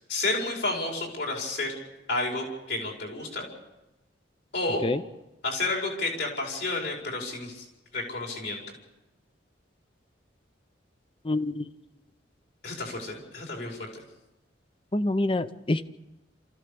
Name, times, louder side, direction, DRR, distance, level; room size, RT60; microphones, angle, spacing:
voice 1, 0.1-1.7 2.1-3.5 4.5-4.8 5.4-7.6 7.9-8.6 12.6-13.9, left 2 dB, 65° left, 0 dB, 5.1 m, -30 dB
voice 2, 11.3-11.7 14.9-15.9, left 2 dB, 30° left, 13 dB, 0.7 m, -26 dB
28.0 x 14.5 x 6.9 m, 0.99 s
head